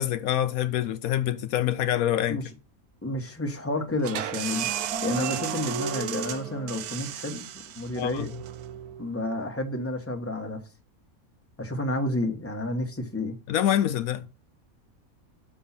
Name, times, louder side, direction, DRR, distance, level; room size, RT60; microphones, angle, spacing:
voice 1, 0.0-2.4 8.0-8.3 13.5-14.2, left 11 dB, 75° left, 1.0 m, -26 dB
voice 2, 3.0-4.7 5.0-7.5 7.7-8.3 9.0-10.6 11.6-13.4, left 1 dB, 10° left, 1.2 m, -30 dB
sound 1, 4.0-9.5, right 10 dB, 90° right, 1.2 m, -34 dB
sound 2, 4.9-6.9, right 2 dB, 70° right, 1.7 m, -35 dB
6.3 x 5.6 x 5.7 m
omnidirectional pair, 1.5 m